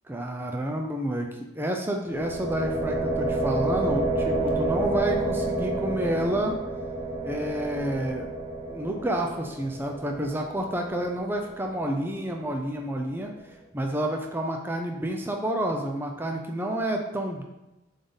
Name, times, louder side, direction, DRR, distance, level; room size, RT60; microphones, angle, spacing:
voice 1, 0.1-6.6 7.2-8.3 8.7-13.3 13.7-17.4, right 1 dB, 10° right, 2 dB, 0.5 m, -29 dB
sound 1, 2.1-11.9, right 2 dB, 30° right, 0.9 m, -30 dB
7.7 x 3.5 x 4.0 m, 0.99 s
head